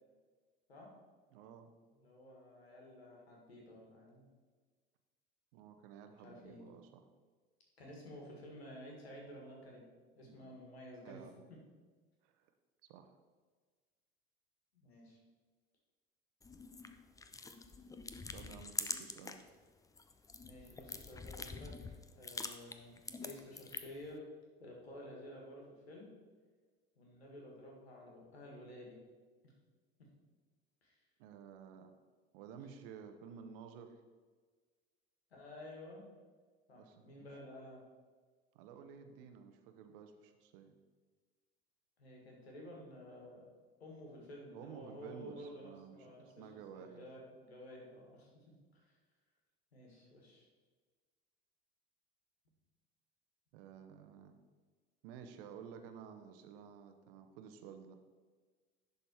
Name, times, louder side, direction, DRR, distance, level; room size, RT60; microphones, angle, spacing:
voice 1, 1.3-1.7 5.5-7.0 10.2-10.6 11.0-11.5 12.2-12.5 12.9-13.1 18.3-19.4 31.2-32.0 32.3-34.0 36.8-37.3 38.5-40.8 44.5-47.1 53.5-54.3 55.0-58.0, right 7 dB, 60° right, 7 dB, 0.9 m, -53 dB
voice 2, 1.9-4.3 6.2-6.6 7.8-11.3 14.7-15.2 20.4-21.7 22.2-24.2 24.6-26.1 27.0-29.0 29.4-29.5 30.8-30.9 35.3-36.1 36.7-37.8 42.0-43.4 43.8-46.5 46.7-48.3 48.7-48.8 49.7-50.5, left 1 dB, 80° left, -1 dB, 1.9 m, -52 dB
sound 1, 16.4-19.5 19.8-24.1, left 4 dB, 10° left, 0.5 m, -45 dB
11.0 x 4.1 x 4.5 m, 1.4 s
figure-of-eight pair, 70°, 31 cm